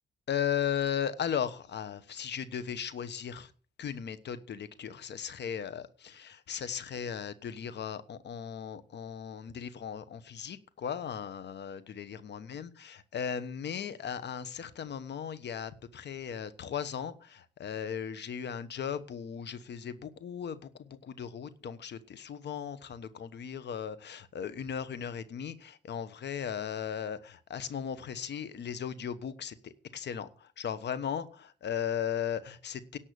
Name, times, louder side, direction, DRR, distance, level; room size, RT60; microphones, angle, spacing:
voice 1, 0.3-3.5 3.8-33.0, left 8 dB, 75° left, 14 dB, 1.1 m, -37 dB
11.0 x 7.4 x 6.8 m, 0.40 s
cardioid pair, 60°, 18 cm